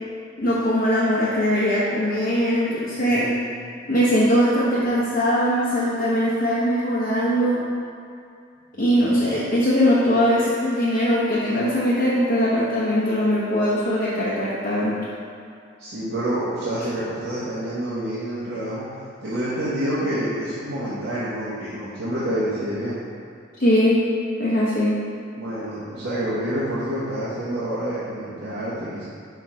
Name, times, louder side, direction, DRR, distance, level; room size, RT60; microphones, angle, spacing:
voice 1, 0.4-3.3 3.9-7.6 8.8-15.0 23.6-24.0 24.4-25.0, equal, 50° left, -9 dB, 1.0 m, -21 dB
voice 2, 2.9-3.6 8.7-9.0 15.8-23.0 25.4-29.0, right 1 dB, 70° right, -12 dB, 1.3 m, -28 dB
4.7 x 4.7 x 4.8 m, 2.4 s
head